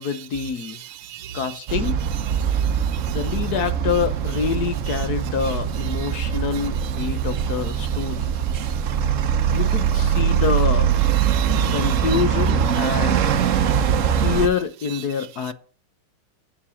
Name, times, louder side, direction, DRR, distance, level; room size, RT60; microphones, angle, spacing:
voice 1, 0.0-0.8 1.3-2.0 3.1-8.3 9.5-11.0 11.7-13.3 14.2-15.5, left 7 dB, 60° left, 1.2 m, -26 dB
voice 2, 0.8-1.5 2.5-3.2 6.0-6.1 11.2-11.9 13.5-13.8 14.1-14.3, right 12 dB, 85° right, 1.5 m, -38 dB
sound 1, 1.7-14.5, right 8 dB, 65° right, 0.8 m, -22 dB
8.7 x 7.3 x 7.1 m
omnidirectional pair, 2.2 m